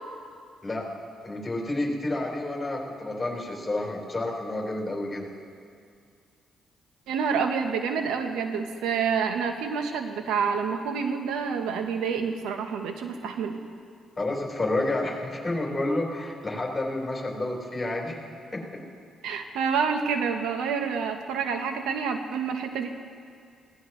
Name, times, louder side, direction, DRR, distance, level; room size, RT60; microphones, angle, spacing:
voice 1, 1.2-5.3 14.2-18.2 18.5-18.8, left 2 dB, 20° left, -3 dB, 4.4 m, -30 dB
voice 2, 7.1-13.6 19.2-22.9, right 6 dB, 90° right, 6 dB, 1.1 m, -28 dB
20.5 x 17.5 x 3.2 m, 2.3 s
cardioid pair, 90°, 0 cm